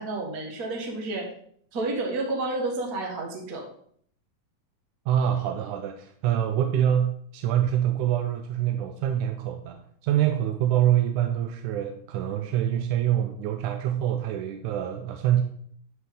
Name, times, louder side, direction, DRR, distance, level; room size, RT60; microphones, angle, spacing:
voice 1, 0.0-1.3 1.7-3.7, right 2 dB, 35° right, 1 dB, 1.6 m, -30 dB
voice 2, 5.1-15.4, right 10 dB, 80° right, 5 dB, 2.0 m, -25 dB
11.5 x 5.6 x 3.8 m, 0.63 s
omnidirectional pair, 3.8 m